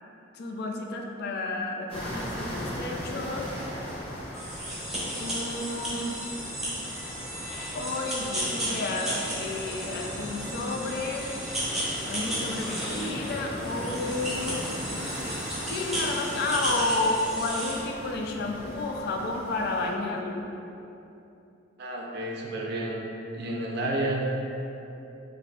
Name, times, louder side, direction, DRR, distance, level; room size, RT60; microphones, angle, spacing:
voice 1, 0.3-3.5 5.1-6.2 7.7-11.3 12.0-14.6 15.6-20.4, left 2 dB, 55° left, 2 dB, 0.3 m, -31 dB
sound 1, 1.9-19.9, equal, 30° left, 0.9 m, -38 dB
sound 2, 4.3-17.8, equal, ahead, 0.7 m, -34 dB
voice 2, 21.8-23.0 23.3-24.2, right 1 dB, 60° right, -1 dB, 0.5 m, -30 dB
4.0 x 2.5 x 2.3 m, 2.9 s
head